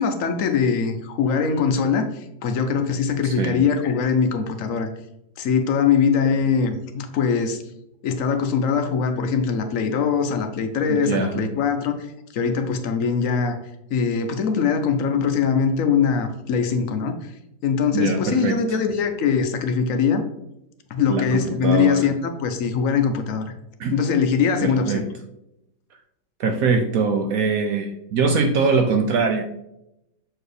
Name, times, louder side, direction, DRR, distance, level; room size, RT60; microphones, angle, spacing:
voice 1, 0.0-4.9 5.4-7.6 8.0-12.1 12.3-13.6 13.9-17.3 17.6-20.2 20.9-23.5 23.9-25.0, left 6 dB, 65° left, 7 dB, 0.8 m, -22 dB
voice 2, 3.2-3.6 10.9-11.5 17.9-18.8 21.1-22.1 23.8-24.0 24.6-25.0 26.4-29.4, right 4 dB, 70° right, 5 dB, 0.8 m, -22 dB
6.6 x 4.6 x 3.3 m, 0.85 s
omnidirectional pair, 2.0 m